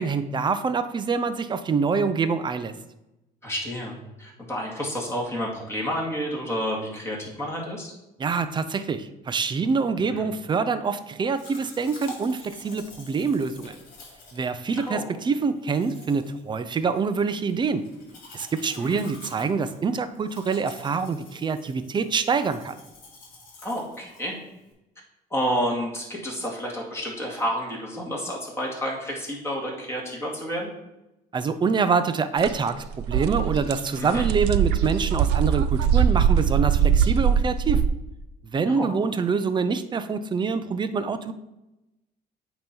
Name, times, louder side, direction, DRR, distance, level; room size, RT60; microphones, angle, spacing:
voice 1, 0.0-2.7 8.2-13.8 14.3-17.8 18.3-22.8 31.3-37.8 38.4-41.3, right 5 dB, 25° right, 11 dB, 0.5 m, -25 dB
voice 2, 3.4-7.9 10.1-10.2 14.8-15.0 18.7-19.0 23.6-24.3 25.3-30.7 34.0-34.2 38.7-38.9, equal, 15° left, -2 dB, 2.2 m, -30 dB
Domestic sounds home sounds, 11.3-24.7, left 2 dB, 50° left, 2.6 m, -48 dB
sound 1, 32.4-32.5 32.8-37.9, right 8 dB, 80° right, 0.4 m, -21 dB
8.6 x 3.1 x 5.3 m, 0.93 s
cardioid pair, 110°, 17 cm